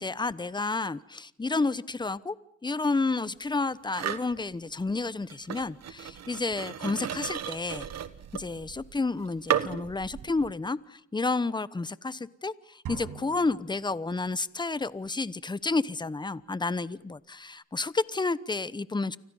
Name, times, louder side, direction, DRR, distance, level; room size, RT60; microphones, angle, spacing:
voice 1, 0.0-2.3 2.6-7.9 8.3-19.2, left 3 dB, 15° left, 17 dB, 0.9 m, -30 dB
sound 1, 3.9-4.3 5.3-10.5, right 9 dB, 60° right, 1.5 m, -34 dB
sound 2, 12.9-14.5, right 7 dB, 80° right, 5.7 m, -43 dB
30.0 x 25.0 x 5.5 m, 0.71 s
cardioid pair, 90°, 30 cm